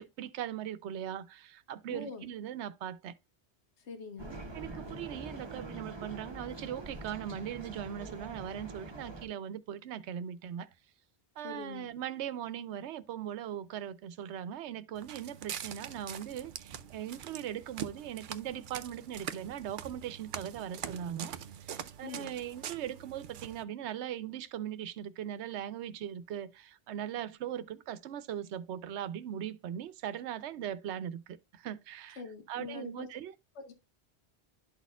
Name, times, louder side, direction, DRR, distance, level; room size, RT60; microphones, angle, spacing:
voice 1, 0.0-3.2 4.5-10.7 11.4-21.3 21.6-32.2 32.5-33.3, right 10 dB, 85° right, 0.9 m, -40 dB
voice 2, 1.9-2.2 3.8-4.4 11.4-11.9 22.0-22.3 32.2-33.1 33.6-33.7, left 4 dB, 85° left, 1.2 m, -43 dB
sound 1, 4.2-9.3, right 2 dB, 25° right, 0.9 m, -44 dB
Walk footsteps, 15.0-23.6, right 9 dB, 60° right, 0.6 m, -44 dB
12.0 x 4.2 x 2.3 m
omnidirectional pair, 1.1 m